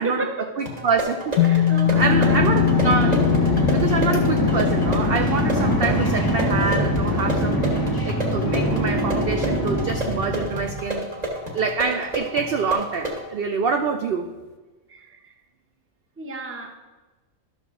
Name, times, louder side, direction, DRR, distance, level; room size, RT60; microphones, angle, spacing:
voice 1, 0.0-0.5 1.4-2.4 14.9-15.4 16.2-16.8, right 1 dB, 15° right, 3 dB, 0.6 m, -33 dB
voice 2, 0.6-3.2 3.7-7.6 8.0-11.1 11.5-14.3, right 5 dB, 65° right, 5 dB, 0.6 m, -26 dB
sound 1, 0.7-13.2, right 1 dB, 30° right, 1.5 m, -31 dB
sound 2, 1.4-9.8, left 11 dB, 60° left, 0.8 m, -24 dB
sound 3, 1.8-10.8, left 1 dB, 20° left, 0.7 m, -23 dB
12.0 x 6.5 x 3.6 m, 1.2 s
omnidirectional pair, 1.4 m